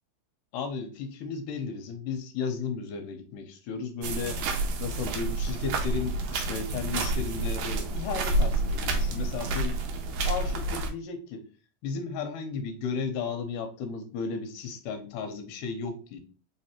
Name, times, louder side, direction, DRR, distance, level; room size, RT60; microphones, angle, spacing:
voice 1, 0.5-4.4 4.8-9.8 10.3-11.5 11.8-16.2, left 5 dB, 80° left, 7 dB, 2.2 m, -34 dB
sound 1, 4.0-10.9, right 2 dB, 75° right, 1.6 m, -29 dB
4.7 x 3.2 x 2.8 m, 0.37 s
omnidirectional pair, 3.9 m